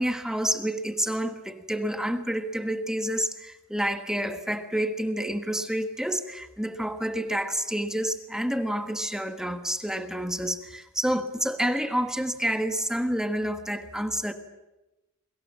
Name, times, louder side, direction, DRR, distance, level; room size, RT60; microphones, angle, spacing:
voice 1, 0.0-14.3, right 1 dB, 5° right, 8 dB, 1.4 m, -29 dB
28.5 x 22.5 x 7.4 m, 1.0 s
head